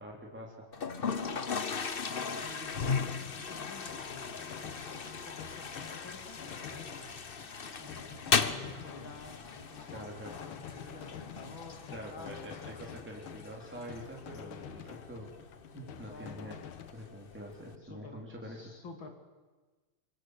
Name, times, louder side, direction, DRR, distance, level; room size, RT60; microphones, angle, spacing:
voice 1, 0.0-1.1 9.9-10.3 11.9-15.3 15.7-16.6 16.9-18.6, equal, 5° right, -1 dB, 3.7 m, -45 dB
Toilet flush, 0.7-17.7, left 5 dB, 35° left, 0.9 m, -38 dB
voice 2, 1.1-1.4 2.1-7.1 7.8-12.8 15.8-16.6 17.8-19.1, left 3 dB, 65° left, 5 dB, 3.8 m, -50 dB
sound 1, 2.7-16.9, left 9 dB, 80° left, 1.9 m, -49 dB
26.0 x 24.0 x 8.3 m, 1.3 s
omnidirectional pair, 2.3 m